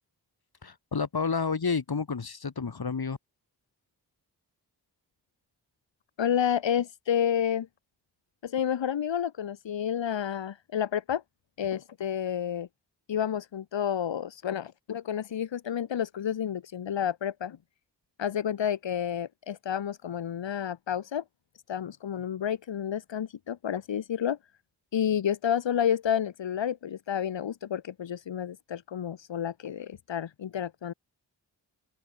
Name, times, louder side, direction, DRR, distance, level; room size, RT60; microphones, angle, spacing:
voice 1, 0.6-3.2, left 5 dB, 55° left, 3.7 m, -30 dB
voice 2, 6.2-7.7 8.4-11.2 11.6-12.7 13.1-17.6 18.2-21.2 21.7-24.4 24.9-30.9, left 9 dB, 85° left, 1.7 m, -30 dB
open air
cardioid pair, 40°, 43 cm